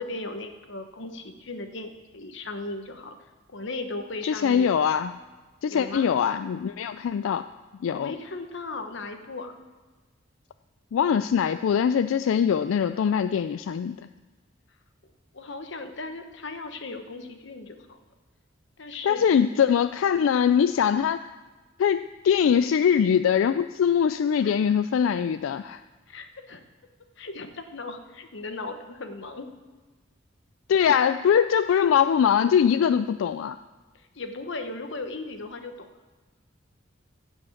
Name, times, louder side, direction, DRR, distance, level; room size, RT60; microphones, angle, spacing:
voice 1, 0.0-3.2 3.5-4.7 5.7-6.2 7.9-9.6 15.3-18.0 18.8-19.7 24.4-24.6 26.1-26.6 27.2-29.5 34.1-35.9, left 3 dB, 65° left, 7 dB, 1.1 m, -37 dB
voice 2, 4.2-5.2 5.6-7.4 7.8-8.1 10.9-14.0 19.0-21.2 21.8-25.8 30.7-33.6, left 7 dB, 85° left, 11 dB, 0.3 m, -22 dB
15.5 x 5.2 x 7.2 m, 1.3 s
head